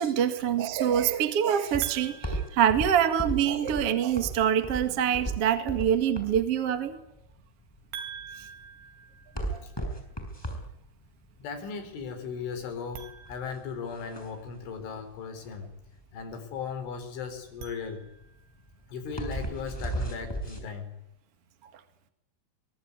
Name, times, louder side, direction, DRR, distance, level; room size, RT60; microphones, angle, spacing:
voice 1, 0.0-7.0 8.4-8.5 9.5-9.7, right 9 dB, 50° right, 9 dB, 1.9 m, -25 dB
sound 1, 1.7-20.6, right 1 dB, 5° left, 5.8 m, -36 dB
sound 2, 1.8-3.5 7.9-10.0 12.8-14.5 17.4-18.6, right 7 dB, 85° right, 5.2 m, -46 dB
voice 2, 11.4-15.7 16.1-18.1 18.9-20.9, left 5 dB, 85° left, 8 dB, 6.7 m, -37 dB
24.0 x 23.0 x 9.7 m, 0.84 s
omnidirectional pair, 5.4 m